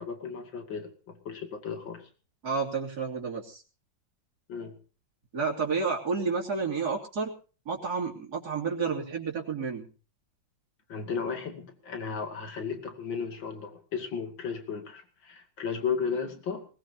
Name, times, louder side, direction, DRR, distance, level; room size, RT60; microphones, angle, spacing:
voice 1, 0.0-2.1 4.5-4.8 10.9-16.7, left 6 dB, 80° left, 5 dB, 3.2 m, -35 dB
voice 2, 2.4-3.6 5.3-7.3 7.7-9.9, right 5 dB, 55° right, -1 dB, 3.5 m, -30 dB
20.5 x 20.0 x 2.8 m, 0.37 s
omnidirectional pair, 2.0 m